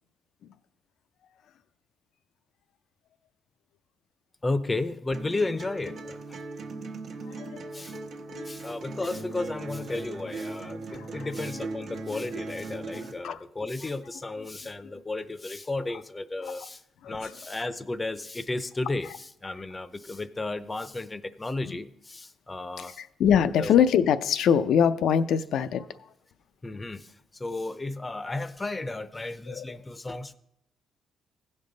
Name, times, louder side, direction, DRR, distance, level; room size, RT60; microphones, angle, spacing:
voice 1, 4.4-6.4 7.7-8.0 8.5-16.8 17.1-23.0 23.6-23.7 26.6-30.3, left 2 dB, 20° left, 0.6 m, -33 dB
sound 1, 5.1-13.1, right 3 dB, 60° right, 1.1 m, -39 dB
voice 2, 7.2-7.7 8.4-8.5 10.9-11.1 12.1-12.2 13.2-13.4 17.0-17.3 23.0-25.9 29.5-29.6, left 8 dB, 75° left, 0.5 m, -23 dB
15.5 x 5.5 x 3.9 m
cardioid pair, 90°, 0 cm